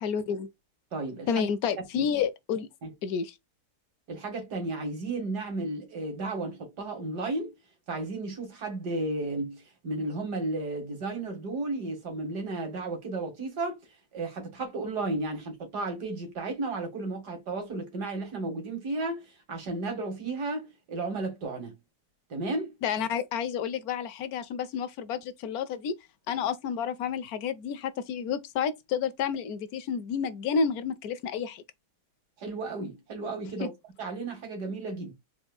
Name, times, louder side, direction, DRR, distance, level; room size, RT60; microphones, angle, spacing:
voice 1, 0.0-0.5 1.3-2.7 3.0-3.3 22.8-25.9 26.3-31.6 33.6-33.7, left 7 dB, 70° left, 1.1 m, -30 dB
voice 2, 0.9-1.5 2.0-2.1 2.8-2.9 4.1-7.5 7.9-13.8 14.1-21.7 22.3-22.8 32.4-33.7 34.0-35.1, right 2 dB, 85° right, 2.4 m, -33 dB
4.4 x 4.3 x 2.3 m
omnidirectional pair, 1.7 m